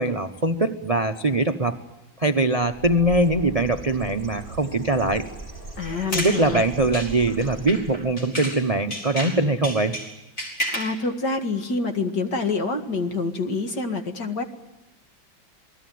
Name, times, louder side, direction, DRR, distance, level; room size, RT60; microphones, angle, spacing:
voice 1, 0.0-1.8 2.2-5.3 6.1-10.0, right 2 dB, 30° right, 8 dB, 0.7 m, -22 dB
Bird, 2.6-8.2, right 3 dB, 10° left, 4.4 m, -40 dB
voice 2, 5.8-6.6 10.7-14.4, left 3 dB, 60° left, 5 dB, 2.6 m, -26 dB
sound 1, 5.8-8.6 8.9-11.0, equal, 40° left, 5.7 m, -32 dB
28.0 x 19.5 x 9.4 m, 1.0 s
omnidirectional pair, 2.1 m